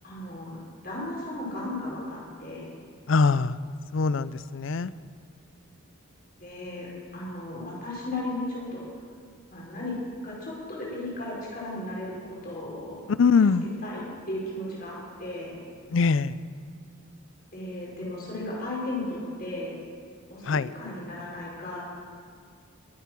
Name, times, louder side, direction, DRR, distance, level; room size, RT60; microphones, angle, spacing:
voice 1, 0.0-2.7 6.4-6.9 7.1-8.9 9.5-10.0 10.2-13.0 13.4-15.6 17.5-19.7 20.3-21.8, left 1 dB, 45° left, -5 dB, 5.1 m, -35 dB
voice 2, 3.1-3.6 3.9-4.9 13.1-13.7 15.9-16.4 20.5-20.7, left 5 dB, 60° left, 17 dB, 0.4 m, -22 dB
22.0 x 8.2 x 6.1 m, 2.1 s
head